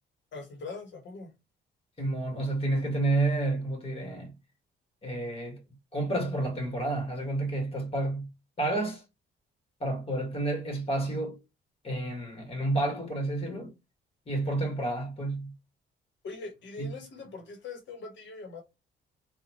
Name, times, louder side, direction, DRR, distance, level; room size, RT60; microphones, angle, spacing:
voice 1, 0.3-1.3 16.2-18.6, left 4 dB, 65° left, 1.3 m, -42 dB
voice 2, 2.0-4.3 5.0-5.6 5.9-8.3 8.6-9.0 9.8-11.4 11.8-13.7 14.3-15.5 16.8-16.9, right 2 dB, 30° left, 1.7 m, -30 dB
4.0 x 2.6 x 3.0 m
cardioid pair, 90°, 20 cm